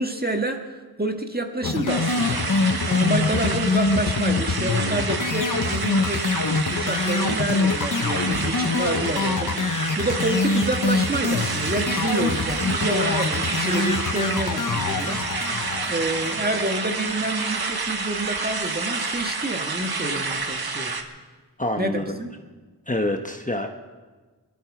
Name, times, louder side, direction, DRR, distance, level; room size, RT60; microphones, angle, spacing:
voice 1, 0.0-2.4 2.9-6.4 6.7-9.6 10.0-15.2 15.9-20.9 21.8-22.3, right 1 dB, 25° right, 4 dB, 1.8 m, -28 dB
sound 1, 1.6-17.0, left 3 dB, 50° left, 0.9 m, -25 dB
sound 2, 1.9-21.0, right 4 dB, 65° right, 1.4 m, -29 dB
voice 2, 21.6-22.2 22.9-23.7, left 1 dB, 20° left, 4 dB, 1.1 m, -26 dB
21.0 x 12.5 x 5.0 m, 1.4 s
wide cardioid pair, 55°, 40 cm